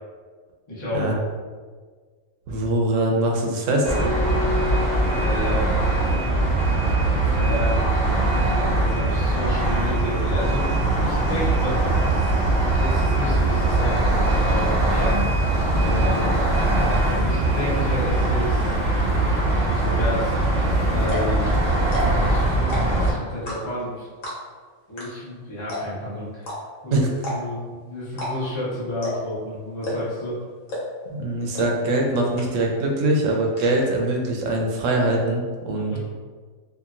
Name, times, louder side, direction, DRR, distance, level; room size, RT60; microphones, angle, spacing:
voice 1, 0.7-1.1 5.1-5.7 7.2-8.0 8.3-10.7 11.0-12.0 12.7-15.2 15.8-16.3 17.2-18.7 19.6-20.4 20.9-21.6 22.2-24.1 24.9-26.6 26.8-30.4 35.7-36.0, equal, 25° left, -8 dB, 0.7 m, -31 dB
voice 2, 2.5-4.0 26.9-27.1 31.1-35.9, right 1 dB, 70° right, 0 dB, 0.9 m, -22 dB
sound 1, 3.8-23.1, right 2 dB, 40° right, 0.7 m, -21 dB
sound 2, 21.0-21.3 21.8-22.3 22.6-23.0 23.5-23.8 24.2-24.6 25.0-25.1 25.3-25.4 25.7-26.0 26.4-26.6 27.2-27.6 28.1-28.3 28.6-28.7 29.0-29.3 29.8-30.2 30.7-31.0 31.5-31.7 32.0-32.1 32.4-32.8 33.1-33.7, left 1 dB, 80° left, 1.3 m, -31 dB
2.9 x 2.4 x 2.4 m, 1.5 s
omnidirectional pair, 1.4 m